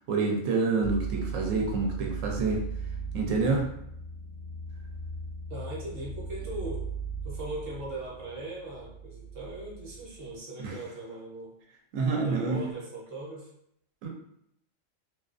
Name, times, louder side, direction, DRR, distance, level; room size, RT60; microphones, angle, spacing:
voice 1, 0.1-2.7 3.1-3.7 10.6-10.8 11.9-12.6 14.0-14.1, right 4 dB, 80° right, 1 dB, 1.0 m, -27 dB
sound 1, 0.8-10.4, right 5 dB, 70° left, 0.9 m, -38 dB
voice 2, 5.5-6.9 7.2-11.5 12.0-13.5, right 2 dB, 55° right, -4 dB, 0.9 m, -39 dB
2.5 x 2.3 x 2.4 m, 0.74 s
omnidirectional pair, 1.3 m